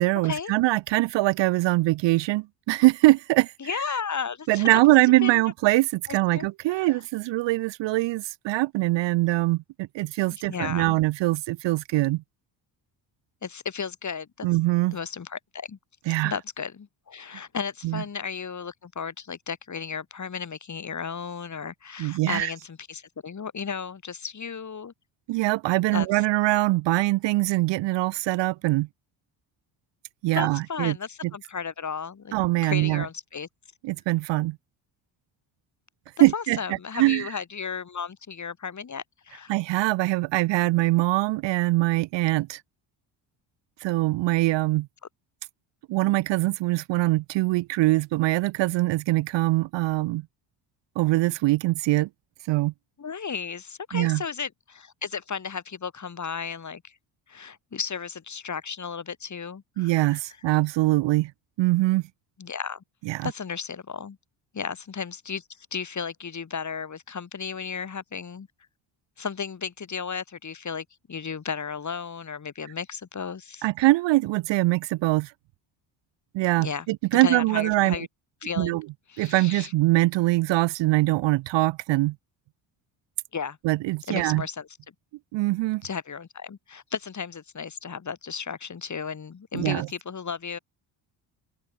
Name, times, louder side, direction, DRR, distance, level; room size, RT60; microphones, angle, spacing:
voice 1, 0.0-3.5 4.5-12.2 14.4-15.0 16.1-16.3 17.8-18.0 22.0-22.5 25.3-28.9 30.2-31.0 32.3-33.0 33.8-34.6 36.2-36.6 36.9-37.3 39.5-42.6 43.8-44.9 45.9-50.3 51.0-52.1 52.5-52.7 53.9-54.2 59.8-61.3 61.6-62.0 63.1-63.3 73.6-75.3 76.3-78.1 78.6-78.8 79.2-82.2 83.6-84.4 85.3-85.8 89.5-89.9, right 19 dB, 65° right, 0.5 m, -23 dB
voice 2, 3.6-4.7 5.2-5.4 6.1-6.9 10.3-11.0 13.4-14.5 14.9-15.8 16.2-24.9 25.9-26.1 30.3-32.3 32.6-33.5 36.2-39.5 53.0-56.9 57.3-60.2 62.4-62.8 63.2-64.2 64.5-68.5 69.2-73.7 76.6-76.9 77.2-78.1 78.4-78.8 79.1-79.7 83.3-83.6 84.1-84.7 85.8-90.6, left 6 dB, 35° left, 5.7 m, -34 dB
open air
cardioid pair, 100°, 47 cm